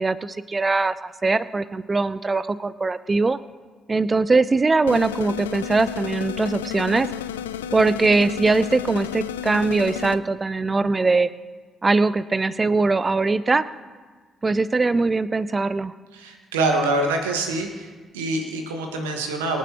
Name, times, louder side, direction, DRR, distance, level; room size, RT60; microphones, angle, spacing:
voice 1, 0.0-3.4 3.9-7.1 7.7-11.3 11.8-13.7 14.4-15.9, right 3 dB, 30° right, 17 dB, 0.6 m, -21 dB
sound 1, 4.9-10.2, left 10 dB, 80° left, 0.4 m, -32 dB
voice 2, 16.1-17.9 18.1-19.6, right 2 dB, 75° right, 3 dB, 1.6 m, -25 dB
25.0 x 9.2 x 3.0 m, 1.4 s
figure-of-eight pair, 40°, 0 cm